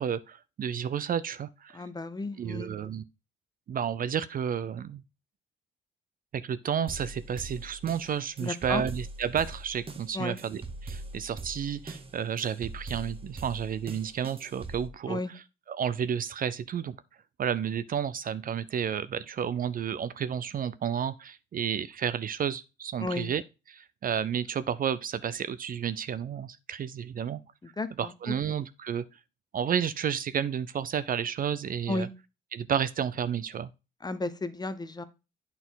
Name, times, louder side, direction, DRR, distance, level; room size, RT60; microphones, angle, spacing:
voice 1, 0.0-1.8 2.4-3.0 3.7-5.0 6.3-15.4 15.7-17.0 17.4-23.4 23.7-27.4 28.0-29.0 29.5-32.1 32.5-33.7, right 8 dB, 45° right, 0.5 m, -31 dB
voice 2, 1.7-2.7 8.4-8.8 10.1-10.4 15.1-15.3 23.0-23.3 27.8-28.3 31.9-32.1 34.0-35.0, left 2 dB, 20° left, 0.7 m, -33 dB
sound 1, 6.9-14.9, right 2 dB, 30° right, 1.0 m, -42 dB
9.1 x 4.2 x 3.9 m
cardioid pair, 90°, 20 cm